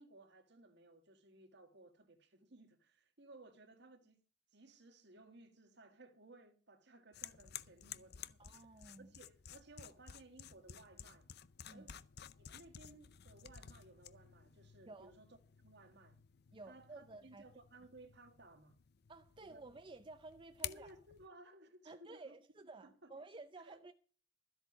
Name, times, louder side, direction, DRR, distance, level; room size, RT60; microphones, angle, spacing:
voice 1, 0.0-4.2 4.5-8.4 9.0-11.3 11.7-12.0 12.4-15.4 15.6-16.2 16.7-18.8 19.4-19.6 20.6-22.4 22.8-23.1 23.7-23.8, right 2 dB, 60° right, 1.8 m, -60 dB
sound 1, 7.1-21.3, left 10 dB, 55° left, 0.6 m, -53 dB
voice 2, 8.4-9.1 11.6-11.9 14.9-15.1 16.5-17.5 19.1-21.0 21.8-23.9, right 3 dB, 25° right, 0.6 m, -54 dB
13.0 x 8.1 x 6.0 m
head